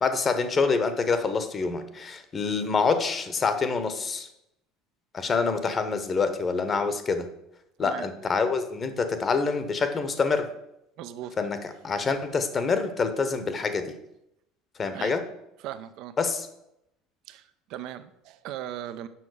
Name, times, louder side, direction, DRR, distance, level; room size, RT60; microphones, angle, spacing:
voice 1, 0.0-4.3 5.1-7.3 7.8-10.5 11.4-11.6 11.8-14.0 14.8-15.2 16.2-16.5, left 4 dB, 30° left, 9 dB, 1.0 m, -26 dB
voice 2, 11.0-11.4 14.9-15.2 15.6-16.2 17.3-19.1, right 11 dB, 60° right, 12 dB, 0.5 m, -38 dB
7.1 x 5.8 x 4.9 m, 0.82 s
hypercardioid pair, 70°, 0 cm